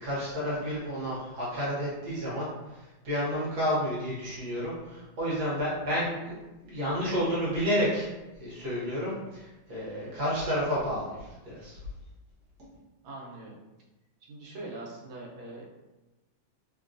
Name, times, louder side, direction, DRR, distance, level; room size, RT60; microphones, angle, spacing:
voice 1, 0.0-11.8, equal, 55° right, -7 dB, 1.3 m, -31 dB
voice 2, 13.0-13.6 14.3-15.7, right 2 dB, 80° right, -3 dB, 1.4 m, -42 dB
3.3 x 2.2 x 2.5 m, 1.1 s
omnidirectional pair, 2.2 m